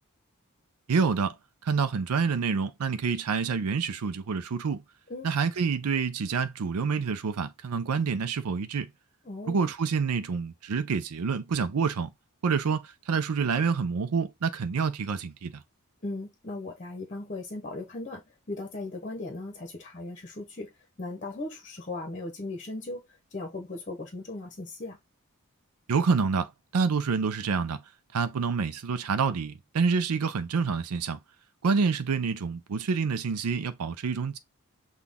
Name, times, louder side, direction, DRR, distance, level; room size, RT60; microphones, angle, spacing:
voice 1, 0.9-1.3 1.6-4.8 5.2-8.9 9.5-12.1 12.4-15.5 25.9-27.8 28.1-31.2 31.6-34.4, right 5 dB, 90° right, 0.5 m, -27 dB
voice 2, 9.2-9.6 16.0-20.7 21.0-23.0 23.3-25.0, left 2 dB, 35° left, 1.0 m, -37 dB
5.9 x 2.4 x 3.5 m
head